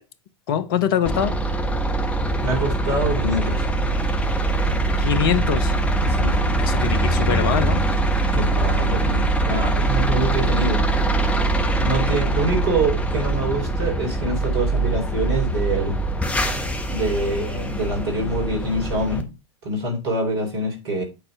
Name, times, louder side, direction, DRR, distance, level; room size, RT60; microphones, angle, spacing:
voice 1, 0.5-1.4 5.0-5.7 6.6-7.8, left 9 dB, 50° left, 0.9 m, -23 dB
sound 1, 1.1-19.2, right 2 dB, 10° left, 1.1 m, -22 dB
voice 2, 2.4-3.6 6.0-6.5 8.3-10.8 11.8-16.0 16.9-19.3 19.6-21.0, right 1 dB, 60° right, 3.7 m, -25 dB
9.0 x 4.3 x 4.7 m
figure-of-eight pair, 85°, 15 cm